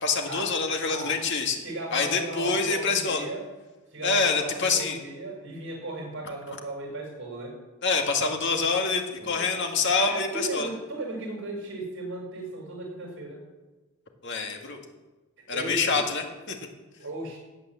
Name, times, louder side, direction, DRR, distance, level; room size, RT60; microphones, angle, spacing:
voice 1, 0.0-1.6 1.9-3.3 4.0-5.0 7.8-10.7 14.2-14.8 15.5-16.6, left 4 dB, 60° left, 3 dB, 2.0 m, -26 dB
voice 2, 0.9-1.2 1.6-3.5 3.9-7.5 9.2-9.5 10.0-13.4 15.5-16.0 17.0-17.4, right 2 dB, 60° right, 0 dB, 6.3 m, -36 dB
15.5 x 9.6 x 7.6 m, 1.2 s
head